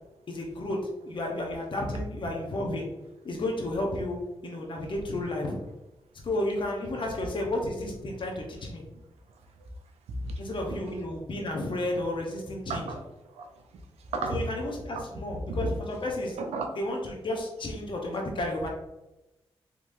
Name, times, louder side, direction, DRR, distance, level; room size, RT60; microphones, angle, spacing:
voice 1, 0.3-0.8 1.0-2.9 3.2-4.2 4.4-5.6 6.2-8.8 10.4-12.9 14.3-16.4 16.8-18.7, left 1 dB, 50° left, 0 dB, 0.9 m, -32 dB
voice 2, 10.1-10.4 10.7-10.8 12.7-13.0 13.4-13.5 14.1-14.4 14.9-15.0 15.5-15.8 16.4-16.7, right 2 dB, 85° right, 5 dB, 0.6 m, -32 dB
3.7 x 3.0 x 2.6 m, 0.97 s
supercardioid pair, 45°, 11 cm